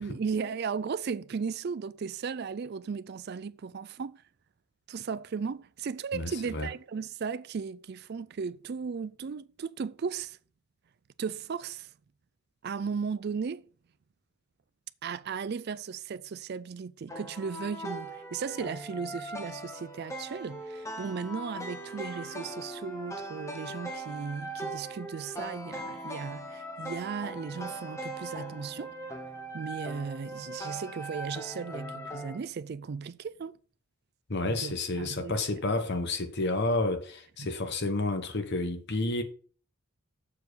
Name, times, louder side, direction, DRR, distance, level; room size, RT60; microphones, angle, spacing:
voice 1, 0.0-4.2 4.9-10.4 11.2-11.9 12.6-13.6 15.0-29.0 29.5-33.6 34.4-35.4 37.4-37.5, right 5 dB, 45° right, 0.4 m, -36 dB
voice 2, 6.1-6.7 34.3-39.2, left 2 dB, 50° left, 1.0 m, -30 dB
sound 1, 17.1-32.4, right 1 dB, 15° left, 1.0 m, -40 dB
7.1 x 4.6 x 6.2 m
head